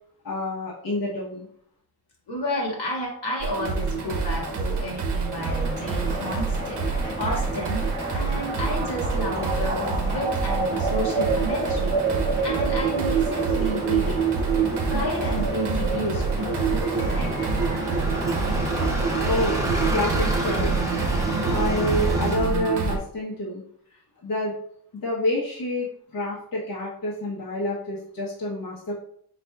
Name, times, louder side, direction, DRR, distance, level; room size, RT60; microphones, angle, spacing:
voice 1, 0.2-1.5 4.3-4.5 19.3-19.6 19.9-20.8 21.5-23.6 24.2-24.5 25.0-25.9 26.1-28.9, left 1 dB, 55° left, -6 dB, 1.0 m, -28 dB
voice 2, 2.3-6.8 7.2-7.8 8.1-14.2 14.9-17.3, equal, 75° left, -2 dB, 1.7 m, -31 dB
sound 1, 3.4-23.0, right 5 dB, 75° right, 0.8 m, -26 dB
Bus, 3.5-22.4, equal, 10° right, 0.8 m, -34 dB
sound 2, 5.4-22.3, equal, 25° left, 1.0 m, -35 dB
4.3 x 4.2 x 2.3 m, 0.64 s
wide cardioid pair, 125°, 41 cm